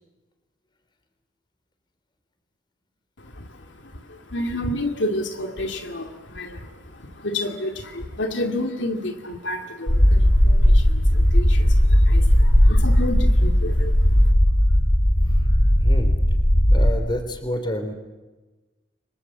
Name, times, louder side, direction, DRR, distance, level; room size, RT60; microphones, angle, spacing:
voice 1, 3.2-14.3, left 1 dB, 70° left, 5 dB, 2.4 m, -30 dB
sound 1, 9.9-16.9, equal, 50° left, 2.8 m, -17 dB
voice 2, 15.8-16.1 16.7-17.9, equal, 25° left, 7 dB, 3.7 m, -28 dB
30.0 x 25.0 x 7.6 m, 1.2 s
head